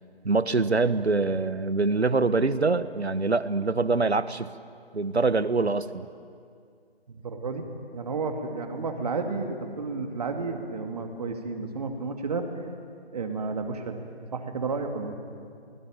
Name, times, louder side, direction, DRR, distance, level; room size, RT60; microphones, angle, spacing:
voice 1, 0.2-4.5 4.9-6.0, right 3 dB, 80° right, 15 dB, 1.3 m, -24 dB
voice 2, 7.1-7.6 7.9-12.4 13.1-14.0 14.3-15.2, right 4 dB, 40° right, 5 dB, 2.5 m, -31 dB
25.5 x 19.5 x 9.0 m, 2.2 s
figure-of-eight pair, 155°, 32 cm